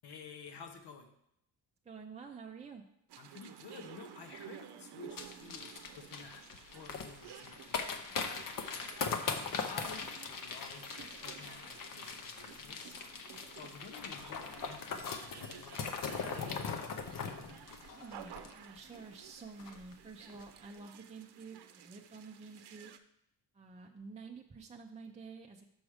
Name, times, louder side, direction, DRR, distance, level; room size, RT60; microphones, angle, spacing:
voice 1, 0.0-1.1 3.2-6.4 6.7-8.5 9.2-10.1 10.4-10.9 11.2-13.0 13.5-17.1, left 5 dB, 75° left, 6 dB, 1.1 m, -52 dB
voice 2, 1.8-2.8 17.9-22.9 23.5-25.7, right 4 dB, 20° right, 2 dB, 0.4 m, -50 dB
sound 1, 3.1-23.0, right 9 dB, 75° right, 0.7 m, -54 dB
sound 2, 5.2-19.0 19.2-19.3 19.6-19.9 20.3-20.4, left 5 dB, 55° left, 0.8 m, -40 dB
6.2 x 6.0 x 4.9 m, 0.77 s
wide cardioid pair, 130°, 39 cm